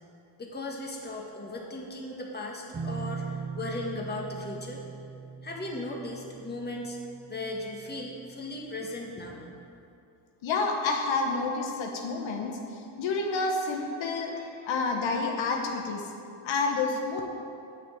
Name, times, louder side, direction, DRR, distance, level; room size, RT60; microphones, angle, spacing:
voice 1, 0.4-4.8 5.4-7.0 7.3-9.4, left 2 dB, 20° left, -1 dB, 1.7 m, -37 dB
sound 1, 2.7-8.3, right 5 dB, 25° right, 1.0 m, -40 dB
voice 2, 10.4-16.0 16.4-17.2, left 3 dB, 75° left, 2 dB, 1.3 m, -29 dB
9.0 x 6.3 x 8.5 m, 2.6 s
cardioid pair, 120°, 46 cm